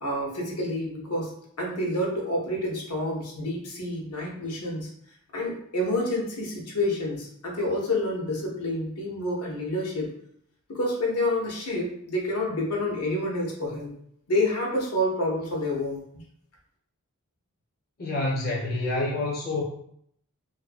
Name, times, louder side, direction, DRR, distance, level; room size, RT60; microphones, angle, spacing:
voice 1, 0.0-1.3 1.6-4.9 5.3-10.1 10.7-13.9 14.3-16.0, left 1 dB, 85° left, -2 dB, 0.8 m, -28 dB
voice 2, 18.0-19.6, left 2 dB, 40° left, -3 dB, 0.5 m, -27 dB
2.5 x 2.5 x 2.3 m, 0.69 s
head